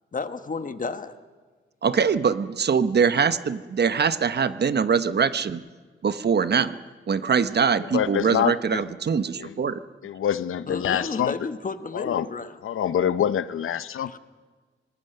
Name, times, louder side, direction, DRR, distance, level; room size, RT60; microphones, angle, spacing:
voice 1, 0.1-1.2 10.7-12.6 14.1-14.2, left 4 dB, 40° left, 9 dB, 1.4 m, -32 dB
voice 2, 1.8-5.6 6.0-6.7 7.1-9.8, right 6 dB, 55° right, 12 dB, 1.0 m, -23 dB
voice 3, 7.9-8.8 9.4-9.5 10.0-11.4 11.9-12.3 12.6-14.1, left 9 dB, 85° left, 14 dB, 0.8 m, -25 dB
25.5 x 20.0 x 6.7 m, 1.4 s
cardioid pair, 85°, 21 cm